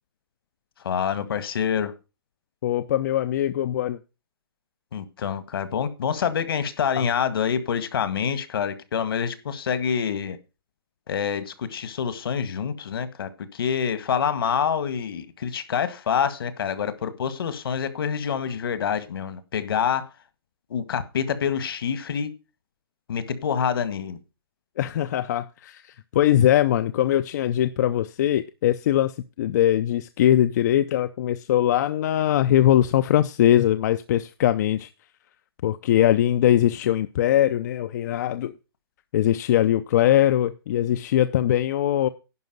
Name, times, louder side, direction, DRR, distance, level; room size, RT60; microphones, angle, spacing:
voice 1, 0.8-1.9 4.9-10.4 11.1-20.1 20.7-22.3 23.1-24.2, left 7 dB, 70° left, 1.8 m, -26 dB
voice 2, 2.6-4.0 7.0-7.1 24.8-34.9 35.6-38.5 39.1-42.1, left 12 dB, 45° left, 0.6 m, -21 dB
11.0 x 4.9 x 7.8 m
hypercardioid pair, 160°, 13 cm